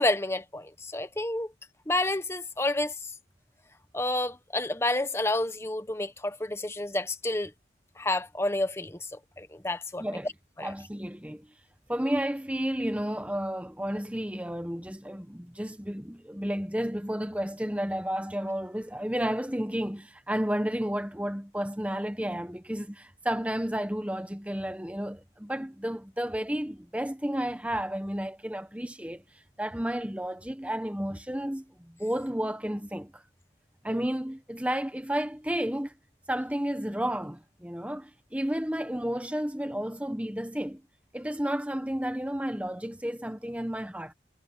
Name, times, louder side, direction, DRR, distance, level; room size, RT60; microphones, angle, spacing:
voice 1, 0.0-1.5 1.9-2.9 3.9-7.5 8.0-9.0 9.4-10.0 10.6-10.7, left 2 dB, 15° left, 1.0 m, -29 dB
voice 2, 10.0-10.3 10.6-11.5 11.9-29.2 29.6-33.2 33.8-35.9 36.3-40.8 41.1-44.1, equal, 5° right, 1.1 m, -32 dB
head